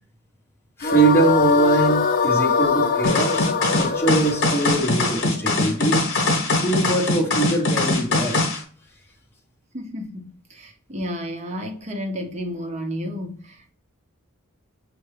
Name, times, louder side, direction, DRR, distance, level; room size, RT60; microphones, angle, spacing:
sound 1, 0.8-6.0, left 6 dB, 40° left, 0.5 m, -22 dB
voice 1, 0.8-6.1 6.6-8.4, right 3 dB, 10° left, 0.9 m, -22 dB
sound 2, 3.0-8.6, left 2 dB, 60° left, 1.1 m, -22 dB
voice 2, 9.7-13.7, equal, 30° right, 0.6 m, -32 dB
5.9 x 2.2 x 3.1 m
head